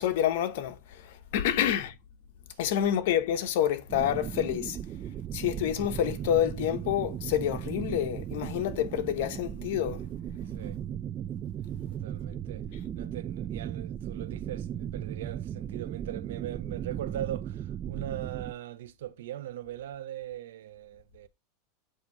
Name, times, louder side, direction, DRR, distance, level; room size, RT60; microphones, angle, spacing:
voice 1, 0.0-1.9 2.6-4.8 5.3-10.0, left 10 dB, 70° left, 1.1 m, -28 dB
sound 1, 3.9-18.5, right 10 dB, 30° right, 0.3 m, -37 dB
voice 2, 11.9-12.7 12.9-21.3, right 12 dB, 85° right, 0.7 m, -40 dB
8.0 x 2.8 x 4.6 m
supercardioid pair, 145°, 0 cm